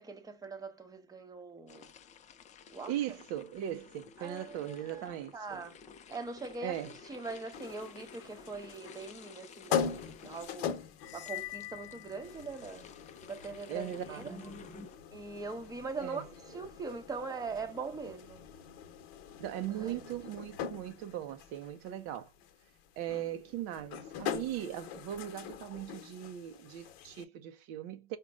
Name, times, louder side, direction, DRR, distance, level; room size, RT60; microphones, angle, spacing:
voice 1, 0.0-1.9 2.7-2.9 4.2-5.8 6.1-10.7 11.1-12.8 13.3-18.4 19.8-20.0, right 4 dB, 10° right, 0.8 m, -42 dB
sound 1, 1.7-15.0, left 5 dB, 25° left, 0.5 m, -54 dB
voice 2, 2.9-5.6 6.6-6.9 13.7-14.6 16.0-16.2 19.4-22.3 23.0-28.2, right 11 dB, 50° right, 0.5 m, -39 dB
sound 2, 7.5-27.2, left 8 dB, 50° left, 0.9 m, -42 dB
sound 3, 11.0-12.9, left 21 dB, 80° left, 0.6 m, -45 dB
5.0 x 2.2 x 4.8 m
supercardioid pair, 130°, 31 cm